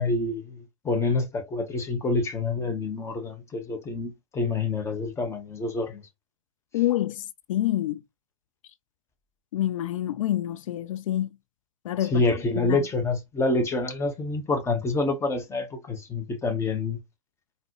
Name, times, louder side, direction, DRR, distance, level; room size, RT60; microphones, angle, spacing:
voice 1, 0.0-6.0 12.1-17.0, left 3 dB, 15° left, 1.0 m, -27 dB
voice 2, 6.7-7.2 7.5-8.0 9.5-11.3 11.8-12.2 12.6-12.8, left 13 dB, 65° left, 0.4 m, -27 dB
3.9 x 2.7 x 3.0 m
hypercardioid pair, 105°, 18 cm